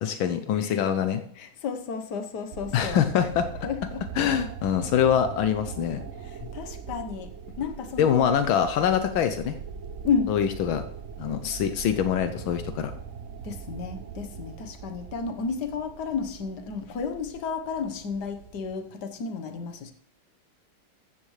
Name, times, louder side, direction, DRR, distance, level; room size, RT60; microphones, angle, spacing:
voice 1, 0.0-1.2 2.7-3.5 4.2-6.0 8.0-9.6 10.3-10.9 11.2-12.9, left 9 dB, 80° left, 9 dB, 1.5 m, -24 dB
voice 2, 1.4-3.0 3.6-4.0 6.2-8.3 10.0-10.3 13.4-19.9, left 5 dB, 60° left, 7 dB, 1.7 m, -32 dB
sound 1, 2.5-18.7, right 6 dB, 85° right, 0.6 m, -41 dB
14.5 x 13.0 x 3.2 m, 0.67 s
omnidirectional pair, 2.2 m